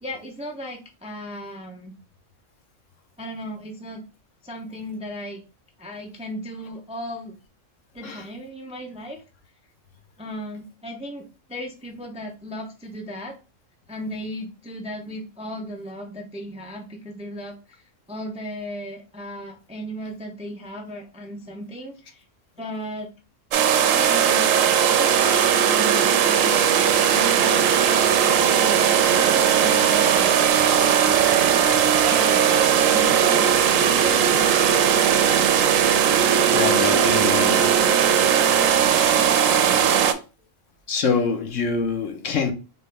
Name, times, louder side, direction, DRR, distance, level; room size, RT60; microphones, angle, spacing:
voice 1, 0.0-1.9 3.2-4.0 4.4-5.4 5.8-7.4 7.9-9.2 10.2-13.4 13.9-22.2 22.6-23.1 23.9-26.7 27.1-28.1 28.4-30.3 30.7-31.6 32.0-34.6, equal, 10° right, 0.4 m, -35 dB
sound 1, 23.5-40.1, right 8 dB, 80° right, 0.9 m, -18 dB
voice 2, 36.5-37.8 38.3-38.5 40.9-42.5, left 5 dB, 70° left, 1.2 m, -25 dB
4.1 x 2.9 x 3.4 m
omnidirectional pair, 1.4 m